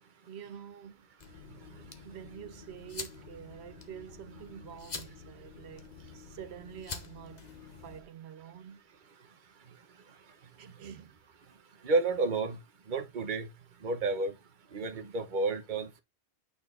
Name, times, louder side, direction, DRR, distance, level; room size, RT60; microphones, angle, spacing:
voice 1, 0.3-1.1 2.0-7.4 7.8-8.8 10.6-11.2, right 9 dB, 85° right, 1.0 m, -47 dB
sound 1, 1.2-8.0, left 4 dB, 45° left, 1.1 m, -46 dB
voice 2, 11.8-12.6 12.9-13.5 13.8-14.4 14.7-16.0, right 3 dB, 50° right, 1.1 m, -30 dB
8.8 x 4.5 x 3.7 m
omnidirectional pair, 1.1 m